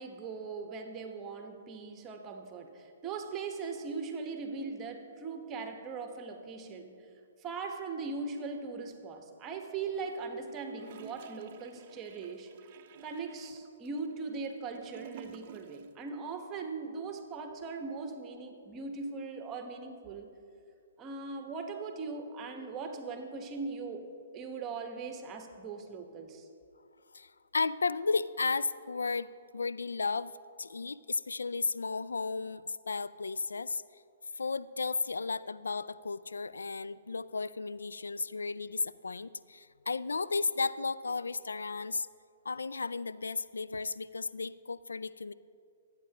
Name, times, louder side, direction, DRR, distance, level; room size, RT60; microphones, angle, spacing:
voice 1, 0.0-6.9 7.4-12.5 13.0-20.3 21.0-24.1 24.3-26.5, right 4 dB, 25° right, 5 dB, 1.2 m, -40 dB
Gurgling / Toilet flush, 9.9-16.0 16.3-16.4, right 9 dB, 45° right, 0.5 m, -52 dB
voice 2, 27.1-30.3 30.6-33.8 34.3-42.1 42.4-45.3, left 4 dB, 80° left, 15 dB, 0.3 m, -34 dB
24.0 x 9.0 x 2.9 m, 2.4 s
hypercardioid pair, 125°, 0 cm